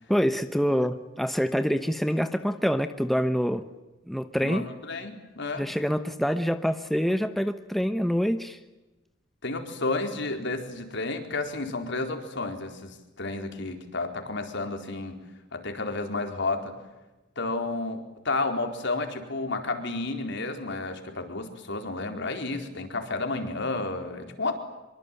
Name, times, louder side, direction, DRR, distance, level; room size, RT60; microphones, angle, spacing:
voice 1, 0.1-3.6 4.1-4.7 5.6-8.6, equal, ahead, 9 dB, 1.0 m, -26 dB
voice 2, 4.4-5.7 9.4-15.2 15.5-16.7 17.4-24.6, left 3 dB, 65° left, 5 dB, 4.4 m, -31 dB
25.5 x 24.0 x 9.2 m, 1.1 s
head